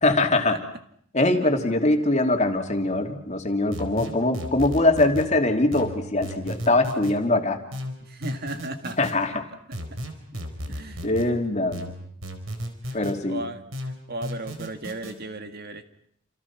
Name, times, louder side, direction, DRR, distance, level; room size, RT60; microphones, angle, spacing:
voice 1, 0.0-0.6 1.1-7.6 9.0-9.4 10.7-10.8 11.0-11.9 12.9-13.4, left 2 dB, 35° left, 4 dB, 2.8 m, -22 dB
sound 1, 3.7-5.3 5.7-7.2 7.7-9.1 9.7-11.3 11.7-13.2 13.7-15.1, equal, 75° right, 4.5 m, -34 dB
voice 2, 8.0-9.0 10.7-11.1 13.3-15.8, right 2 dB, 50° right, 8 dB, 1.9 m, -35 dB
29.5 x 28.5 x 6.1 m, 0.67 s
head